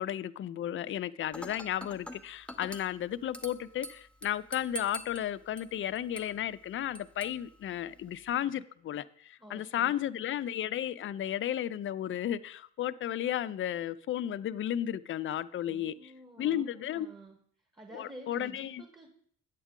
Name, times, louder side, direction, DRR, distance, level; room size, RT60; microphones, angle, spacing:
voice 1, 0.0-16.1 16.4-17.1 17.9-18.8, left 11 dB, 45° left, 0.4 m, -34 dB
Dishes pots and pans / Glass, 1.3-8.3, right 1 dB, 5° left, 0.7 m, -46 dB
voice 2, 9.4-10.0 15.7-17.4 17.7-19.1, right 1 dB, 15° right, 1.2 m, -50 dB
8.4 x 8.1 x 3.7 m
cardioid pair, 90°, 30 cm